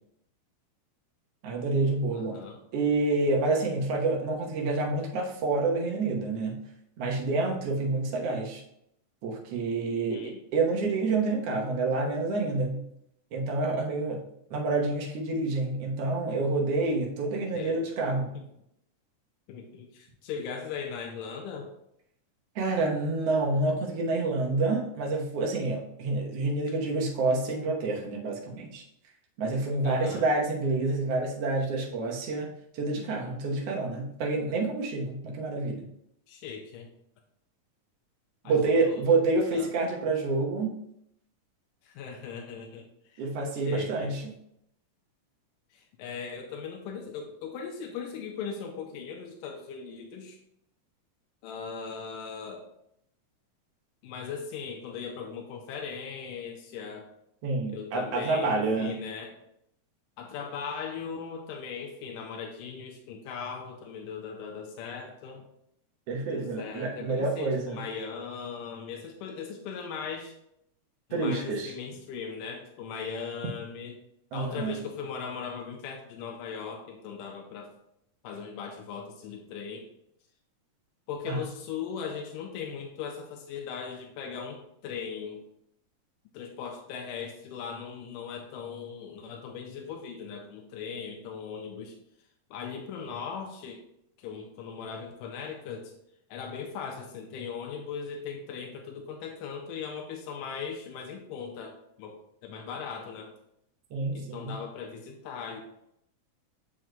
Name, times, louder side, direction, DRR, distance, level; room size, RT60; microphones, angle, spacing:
voice 1, 1.4-2.4 2.7-6.6 7.0-8.6 9.2-12.8 13.3-14.2 14.5-18.3 22.5-28.8 29.4-35.9 38.4-40.7 43.2-44.2 57.4-58.9 66.1-67.8 71.1-71.7 74.3-74.8 81.3-81.4 103.9-104.5, right 3 dB, 65° right, -1 dB, 1.7 m, -28 dB
voice 2, 2.1-2.6 10.0-10.4 17.5-17.8 18.3-18.4 19.5-21.7 29.8-30.3 36.3-36.9 38.4-38.6 38.8-39.2 39.5-39.7 41.8-43.3 43.5-44.1 45.7-50.4 51.4-52.7 54.0-57.1 57.7-59.3 60.2-65.4 66.3-70.4 71.1-74.0 74.3-77.7 78.2-79.9 81.1-85.4 86.3-92.0 92.5-93.8 94.2-95.9 96.3-102.2 102.4-103.4 104.1-105.6, left 6 dB, 90° left, 2 dB, 2.2 m, -39 dB
7.0 x 6.1 x 2.2 m, 0.76 s
omnidirectional pair, 3.7 m